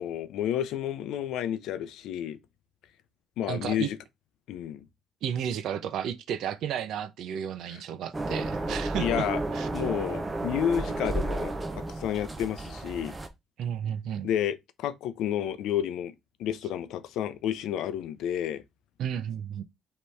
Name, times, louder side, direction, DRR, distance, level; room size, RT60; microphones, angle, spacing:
voice 1, 0.0-2.4 3.4-4.0 4.5-4.9 7.7-7.8 9.0-9.4 9.7-13.2 14.2-16.1 16.4-18.6, left 10 dB, 85° left, 0.5 m, -31 dB
voice 2, 3.5-3.9 5.2-9.3 9.5-9.7 13.6-14.3 19.0-19.6, right 9 dB, 65° right, 0.5 m, -32 dB
sound 1, 8.1-13.3, right 2 dB, 15° right, 0.6 m, -32 dB
5.3 x 3.0 x 3.2 m
cardioid pair, 175°, 0 cm